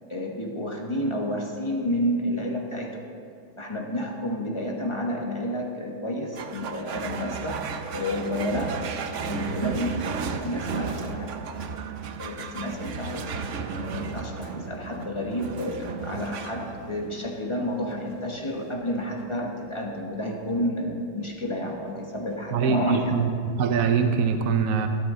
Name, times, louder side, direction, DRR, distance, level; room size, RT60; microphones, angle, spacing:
voice 1, 0.1-3.1 3.6-7.7 7.9-8.8 9.2-11.5 12.2-23.3, equal, 20° left, 0 dB, 0.9 m, -30 dB
sound 1, 6.3-23.1, right 5 dB, 85° right, 0.6 m, -35 dB
voice 2, 22.5-23.3 23.6-24.9, right 6 dB, 65° right, 7 dB, 0.9 m, -23 dB
13.5 x 13.0 x 3.7 m, 2.4 s
omnidirectional pair, 2.1 m